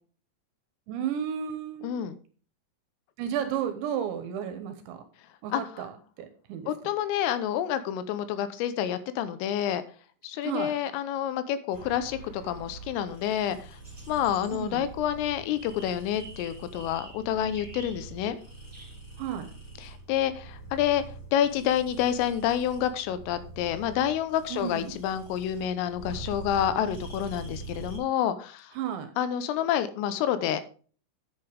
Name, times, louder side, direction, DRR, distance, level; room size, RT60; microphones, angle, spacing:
voice 1, 0.9-1.9 3.2-5.0 5.4-6.7 10.4-10.7 14.5-14.9 19.2-19.5 24.5-25.0 28.7-29.1, right 9 dB, 75° right, 8 dB, 2.9 m, -33 dB
voice 2, 1.8-2.2 5.5-5.8 6.7-9.8 10.2-13.6 14.1-18.4 19.8-21.0 21.3-28.7 29.2-30.6, left 10 dB, 80° left, 12 dB, 3.4 m, -28 dB
sound 1, 11.7-28.0, right 3 dB, 20° left, 4.4 m, -44 dB
sound 2, 13.8-18.9, right 2 dB, 10° right, 2.8 m, -50 dB
10.0 x 9.3 x 3.4 m, 0.40 s
omnidirectional pair, 6.0 m